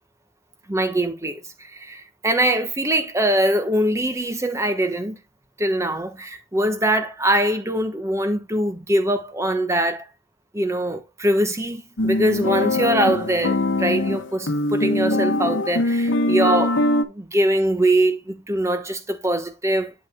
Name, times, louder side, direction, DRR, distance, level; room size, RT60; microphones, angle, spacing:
voice 1, 0.7-5.2 5.6-10.1 10.5-16.8 17.1-19.9, right 1 dB, 15° right, 1.1 m, -22 dB
sound 1, 12.0-17.0, left 2 dB, 75° left, 1.0 m, -22 dB
8.3 x 8.1 x 2.2 m
head